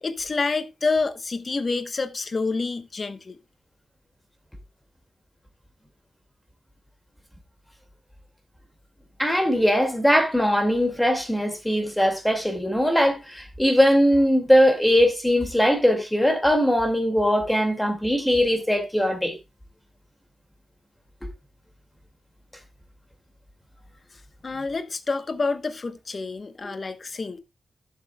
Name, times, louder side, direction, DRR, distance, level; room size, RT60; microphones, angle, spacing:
voice 1, 0.0-3.4 24.4-27.4, left 4 dB, 35° left, 0.9 m, -28 dB
voice 2, 9.2-19.4, equal, 5° left, 2.0 m, -20 dB
16.0 x 7.5 x 2.2 m
wide cardioid pair, 150°, 0 cm